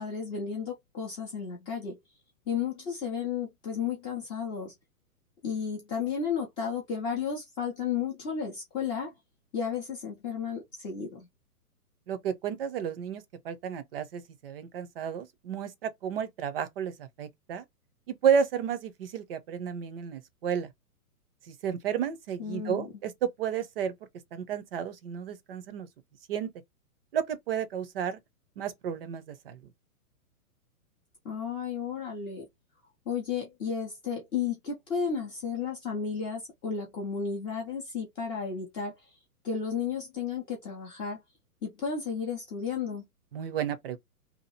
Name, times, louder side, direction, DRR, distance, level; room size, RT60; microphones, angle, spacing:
voice 1, 0.0-2.0 2.5-4.7 5.4-9.1 9.5-11.3 22.4-22.9 31.2-32.5 33.1-39.0 39.4-41.2 41.6-43.0, left 6 dB, 10° left, 0.5 m, -33 dB
voice 2, 12.1-17.6 18.1-20.7 21.5-23.9 24.3-25.9 26.3-26.5 27.1-28.2 28.6-29.6 43.3-44.0, right 8 dB, 40° right, 0.6 m, -32 dB
2.8 x 2.5 x 4.0 m
hypercardioid pair, 140°, 45 cm